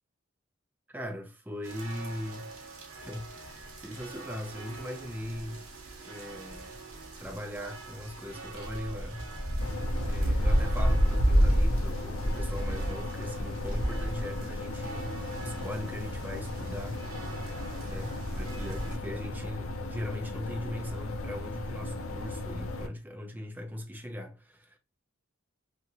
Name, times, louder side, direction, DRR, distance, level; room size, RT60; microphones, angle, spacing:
voice 1, 0.9-2.6 3.0-5.7 6.0-6.8 7.2-17.0 17.5-24.8, left 1 dB, 10° right, 0.5 m, -40 dB
sound 1, 1.6-19.0, equal, 85° right, 0.9 m, -32 dB
sound 2, 9.6-22.9, left 2 dB, 85° left, 0.5 m, -37 dB
2.8 x 2.5 x 2.8 m
head